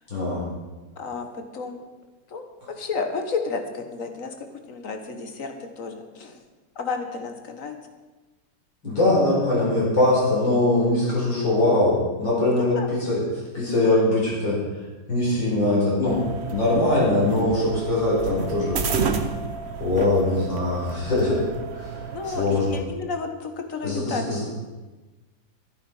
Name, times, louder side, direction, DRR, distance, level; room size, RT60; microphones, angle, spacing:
voice 1, 0.1-0.4 8.8-13.2 13.5-14.6 15.1-16.2 16.5-18.8 19.8-21.4 21.7-22.8 23.8-24.4, left 2 dB, 75° left, -5 dB, 5.8 m, -22 dB
voice 2, 1.0-1.8 2.3-4.3 4.7-6.4 6.7-7.7 11.1-11.3 12.5-12.9 17.0-17.1 22.1-24.5, left 4 dB, 45° left, 6 dB, 1.6 m, -32 dB
sound 1, 16.0-22.8, right 5 dB, 45° right, 1.0 m, -31 dB
12.5 x 11.0 x 5.6 m, 1.2 s
omnidirectional pair, 2.0 m